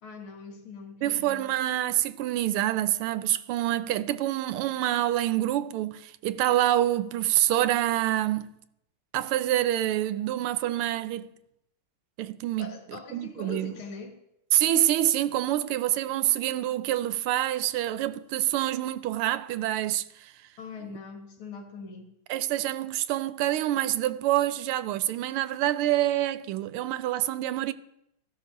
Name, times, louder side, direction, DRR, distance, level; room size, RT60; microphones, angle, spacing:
voice 1, 0.0-1.5 12.6-14.2 20.6-22.1, left 5 dB, 70° left, 2.3 m, -42 dB
voice 2, 1.0-8.5 9.1-11.3 12.2-12.7 13.1-13.7 14.5-20.3 22.3-27.7, right 13 dB, 85° right, 1.5 m, -26 dB
16.0 x 14.0 x 2.6 m
omnidirectional pair, 2.4 m